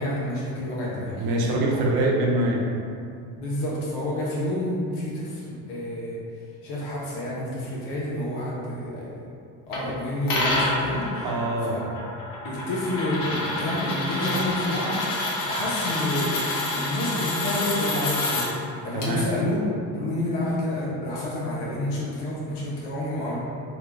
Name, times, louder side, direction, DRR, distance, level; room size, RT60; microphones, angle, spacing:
voice 1, 0.0-1.2 1.7-1.9 3.4-6.2 6.6-9.3 9.7-11.3 12.4-15.0 15.4-18.5 18.8-19.6 19.9-23.4, left 1 dB, 85° left, -6 dB, 0.9 m, -29 dB
voice 2, 1.2-2.6 11.2-11.8 18.9-19.3, right 1 dB, 60° right, -2 dB, 0.7 m, -24 dB
sound 1, 9.7-9.8 10.3-18.5 19.0-19.1, left 2 dB, 50° left, 0.8 m, -28 dB
2.8 x 2.2 x 3.3 m, 2.5 s
supercardioid pair, 85°, 43 cm